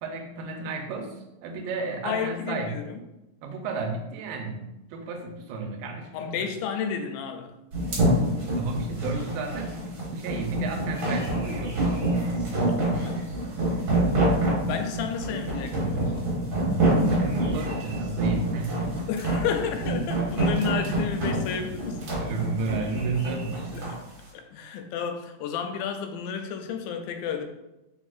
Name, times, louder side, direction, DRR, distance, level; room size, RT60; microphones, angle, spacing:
voice 1, 0.0-2.7 3.4-4.6 4.9-6.5 8.6-12.0 17.0-19.0 22.2-23.9, right 3 dB, 90° right, 2.4 m, -33 dB
voice 2, 2.0-3.0 6.1-7.6 12.7-13.3 14.7-16.2 19.1-22.2 23.7-24.0 24.3-27.4, left 7 dB, 85° left, 2.3 m, -32 dB
sound 1, 7.7-24.0, right 1 dB, 50° right, 1.6 m, -26 dB
4.5 x 4.1 x 2.4 m
omnidirectional pair, 4.0 m